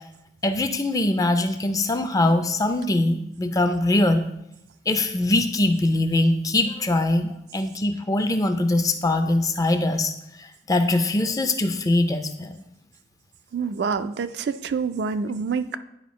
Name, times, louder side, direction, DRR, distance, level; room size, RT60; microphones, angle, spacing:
voice 1, 0.4-4.2 4.9-10.1 10.7-12.5, left 2 dB, 20° left, 8 dB, 0.4 m, -22 dB
voice 2, 13.5-15.8, right 5 dB, 70° right, 11 dB, 0.3 m, -27 dB
10.0 x 4.5 x 3.1 m, 0.79 s
head